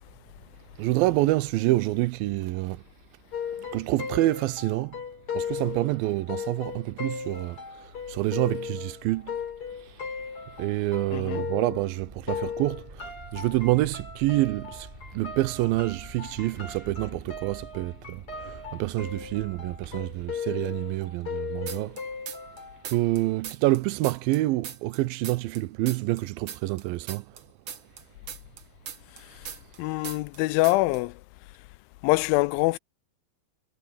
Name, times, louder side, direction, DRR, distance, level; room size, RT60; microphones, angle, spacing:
voice 1, 0.8-2.8 3.6-5.0 5.3-9.4 10.6-22.0 22.8-27.4, right 18 dB, 90° right, 2.5 m, -27 dB
sound 1, 3.3-12.0 12.3-23.0, left 6 dB, 40° left, 4.9 m, -37 dB
sound 2, 12.0-20.3, right 1 dB, 15° right, 6.3 m, -46 dB
sound 3, 21.7-22.6 22.8-25.6 25.9-29.8 30.0-30.4 30.6-31.0, right 8 dB, 55° right, 1.4 m, -39 dB
voice 2, 29.8-31.1 32.0-32.8, left 21 dB, 90° left, 2.3 m, -24 dB
omnidirectional pair, 4.1 m